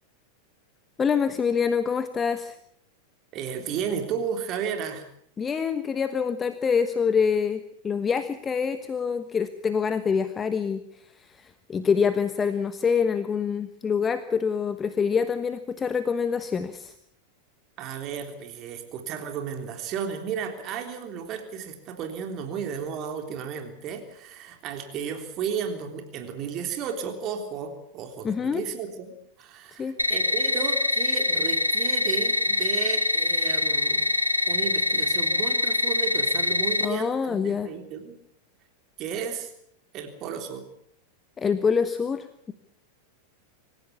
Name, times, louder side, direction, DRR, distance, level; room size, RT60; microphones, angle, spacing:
voice 1, 1.0-2.6 5.4-10.8 11.2-16.9 28.2-28.6 29.8-30.0 36.8-37.7 41.4-42.5, left 6 dB, 20° left, 12 dB, 1.3 m, -26 dB
voice 2, 3.3-5.0 17.8-29.1 29.4-34.1 34.5-38.2 39.0-39.5 39.9-40.7, right 7 dB, 35° right, 6 dB, 3.5 m, -33 dB
sound 1, 30.0-36.8, left 2 dB, 90° left, 1.8 m, -24 dB
26.5 x 15.5 x 8.4 m, 0.69 s
figure-of-eight pair, 90°, 0 cm